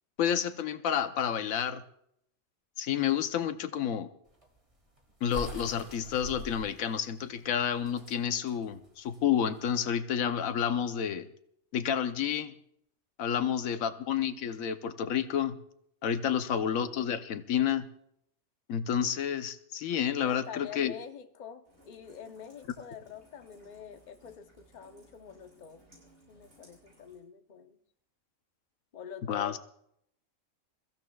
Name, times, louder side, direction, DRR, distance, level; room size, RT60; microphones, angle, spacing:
voice 1, 0.2-1.8 2.8-4.1 5.2-11.3 11.7-12.5 13.2-15.6 16.0-17.9 18.7-20.9 29.3-29.6, left 8 dB, 90° left, 1.2 m, -30 dB
sound 1, 4.3-9.9, equal, 25° right, 2.1 m, -46 dB
voice 2, 13.4-13.9 16.2-16.7 20.2-25.8 26.3-27.8 28.9-29.6, left 7 dB, 40° left, 0.8 m, -46 dB
Rain, 21.6-27.2, right 1 dB, 70° right, 7.3 m, -61 dB
28.0 x 15.0 x 2.3 m
omnidirectional pair, 1.4 m